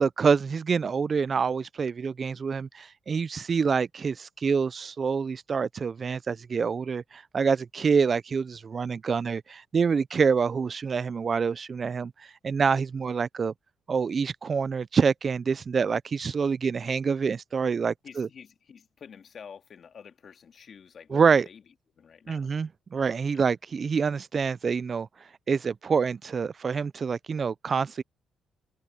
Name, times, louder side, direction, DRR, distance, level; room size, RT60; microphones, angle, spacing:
voice 1, 0.0-12.1 12.4-13.5 13.9-18.3 21.1-21.5 22.3-25.1 25.5-28.0, right 5 dB, 40° right, 0.4 m, -26 dB
voice 2, 18.0-21.6 22.0-22.5 23.3-23.5, left 7 dB, 50° left, 1.9 m, -49 dB
cardioid pair, 90°, 0 cm